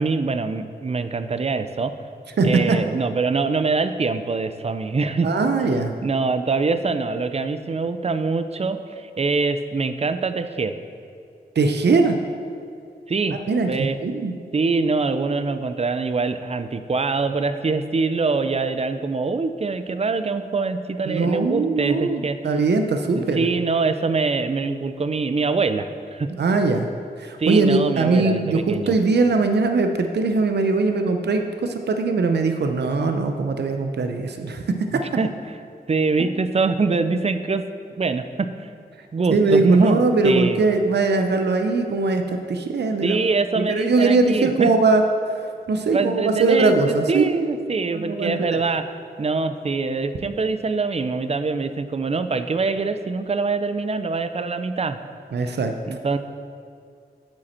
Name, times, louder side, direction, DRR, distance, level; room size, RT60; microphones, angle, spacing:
voice 1, 0.0-1.9 2.4-5.3 6.0-10.7 13.1-13.4 13.7-14.0 14.5-22.4 23.1-26.3 27.4-29.0 34.9-35.3 35.9-37.6 37.9-38.7 39.1-40.6 43.0-44.7 45.9-48.8 49.2-55.0 55.9-56.2, right 4 dB, 40° right, 10 dB, 0.5 m, -24 dB
voice 2, 2.4-2.8 5.2-5.9 11.6-12.2 13.5-14.3 21.1-23.4 26.4-26.9 27.2-35.0 39.3-43.2 43.6-45.0 45.7-47.4 47.9-48.6 55.3-55.7, right 3 dB, 80° right, 5 dB, 0.6 m, -21 dB
8.4 x 7.8 x 4.3 m, 2.3 s
wide cardioid pair, 105°, 17 cm